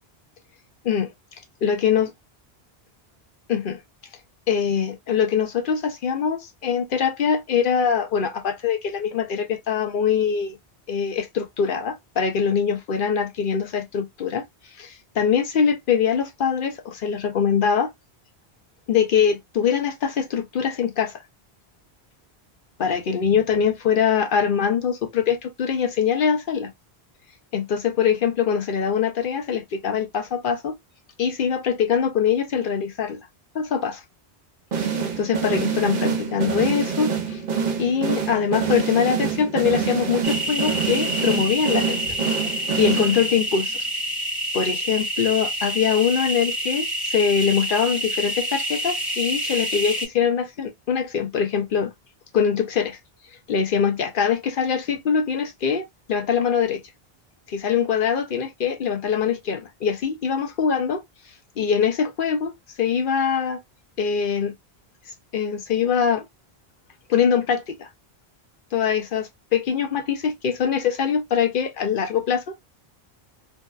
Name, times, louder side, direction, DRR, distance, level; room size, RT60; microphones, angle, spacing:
voice 1, 1.6-2.1 3.5-3.8 4.5-10.6 10.9-14.4 14.8-17.9 18.9-21.2 22.8-26.7 27.5-30.7 31.2-33.2 33.5-34.0 34.8-37.4 37.8-42.1 42.8-43.7 44.5-51.9 52.3-53.0 53.5-56.8 57.5-61.0 61.6-62.5 62.8-63.6 64.0-64.5 65.3-66.2 67.1-67.9 68.7-72.5, left 7 dB, 60° left, 0.7 m, -23 dB
sound 1, 34.7-43.5, right 6 dB, 60° right, 0.8 m, -26 dB
sound 2, 40.2-50.1, equal, ahead, 0.8 m, -27 dB
2.6 x 2.2 x 2.2 m
omnidirectional pair, 1.1 m